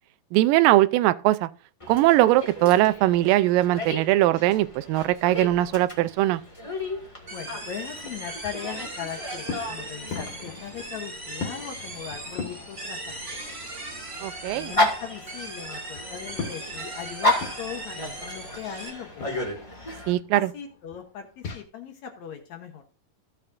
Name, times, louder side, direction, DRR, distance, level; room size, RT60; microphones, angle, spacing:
voice 1, 0.3-1.5 1.9-6.4 14.2-14.7 20.1-20.5, right 16 dB, 85° right, 2.3 m, -21 dB
Dog, 1.8-20.1, left 1 dB, 25° left, 0.6 m, -34 dB
sound 1, 7.0-13.8 14.2-21.6, left 5 dB, 50° left, 2.0 m, -42 dB
voice 2, 7.3-13.4 14.5-19.1 19.4-19.5 20.3-22.8, left 8 dB, 65° left, 2.0 m, -39 dB
sound 2, 7.3-18.9, right 2 dB, 25° right, 3.3 m, -39 dB
15.0 x 6.8 x 2.5 m
omnidirectional pair, 3.9 m